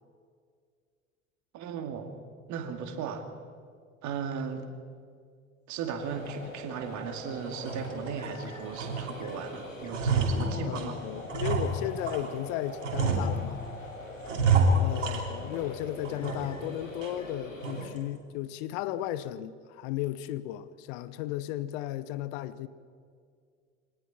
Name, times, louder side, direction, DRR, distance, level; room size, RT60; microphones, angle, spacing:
voice 1, 1.5-2.1 2.5-3.3 4.0-4.7 5.7-11.0 14.5-14.8, right 6 dB, 50° right, 2.5 m, -36 dB
sound 1, 6.0-17.9, left 1 dB, 90° left, 2.5 m, -43 dB
sound 2, 6.3-6.4 6.9-7.0 7.5-8.4 8.8-9.4 9.7-12.3 12.8-13.8 14.2-15.7 16.0-16.7 17.0-17.1 17.6-18.0, right 3 dB, 75° right, 3.0 m, -29 dB
voice 2, 10.6-13.6 14.8-22.7, left 13 dB, 55° left, 0.9 m, -35 dB
24.0 x 18.5 x 6.0 m
figure-of-eight pair, 70°, 38 cm